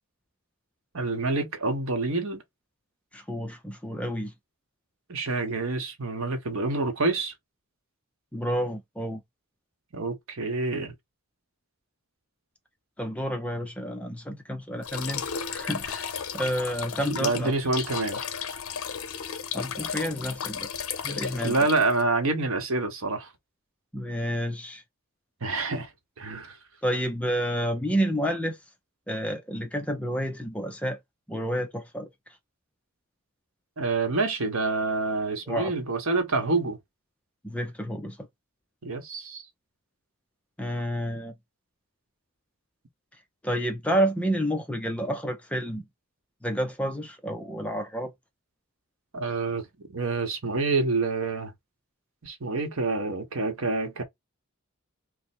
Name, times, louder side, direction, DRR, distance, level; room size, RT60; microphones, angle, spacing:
voice 1, 0.9-2.4 5.1-7.3 9.9-10.9 17.0-18.2 21.4-23.3 25.4-25.9 26.2-26.6 33.8-36.8 38.8-39.4 49.1-49.7 49.9-51.5 52.2-54.0, right 3 dB, 70° right, 0.9 m, -27 dB
voice 2, 3.1-4.3 8.3-9.2 13.0-17.5 19.5-20.7 21.0-21.6 23.9-24.8 26.8-28.6 29.1-31.0 31.3-32.1 35.5-35.7 37.4-38.3 40.6-41.3 43.4-45.8 46.4-48.1, equal, 5° left, 0.4 m, -30 dB
sound 1, 14.8-22.0, left 7 dB, 75° left, 0.6 m, -34 dB
3.1 x 2.1 x 4.2 m
head